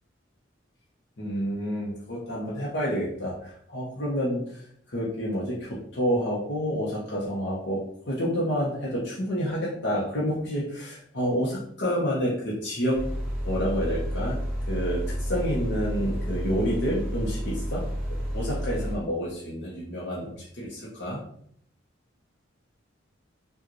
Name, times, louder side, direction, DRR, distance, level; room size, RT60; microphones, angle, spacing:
voice 1, 1.2-13.1 13.4-17.8 18.3-21.2, equal, 60° left, -5 dB, 0.9 m, -29 dB
sound 1, 12.9-19.0, equal, 5° right, 1.1 m, -30 dB
4.8 x 2.5 x 3.0 m, 0.65 s
head